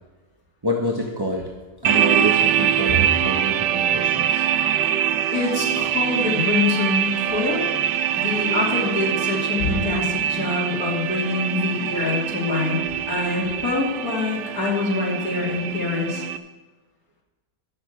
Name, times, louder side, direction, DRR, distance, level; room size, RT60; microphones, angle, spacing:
voice 1, 0.6-1.5 1.8-4.4, equal, 20° right, 0 dB, 0.7 m, -27 dB
sound 1, 1.8-16.4, right 9 dB, 75° right, 1.2 m, -24 dB
voice 2, 5.3-7.7 8.1-12.8 13.1-16.2, left 3 dB, 50° left, -3 dB, 3.1 m, -25 dB
12.5 x 6.4 x 8.0 m, 1.2 s
omnidirectional pair, 1.9 m